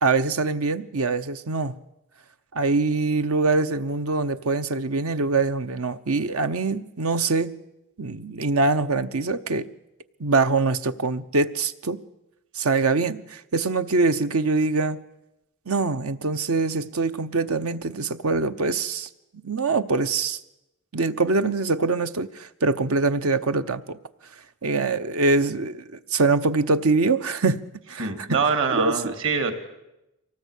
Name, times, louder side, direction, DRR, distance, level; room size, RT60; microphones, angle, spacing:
voice 1, 0.0-1.7 2.5-7.5 8.0-9.7 10.2-12.0 12.5-15.0 15.7-19.1 19.4-20.4 20.9-24.0 24.6-27.6 27.9-28.4 28.7-29.1, right 3 dB, 80° right, 11 dB, 1.0 m, -24 dB
voice 2, 28.0-29.5, right 5 dB, 65° right, 7 dB, 2.8 m, -24 dB
24.0 x 18.5 x 8.3 m, 0.93 s
head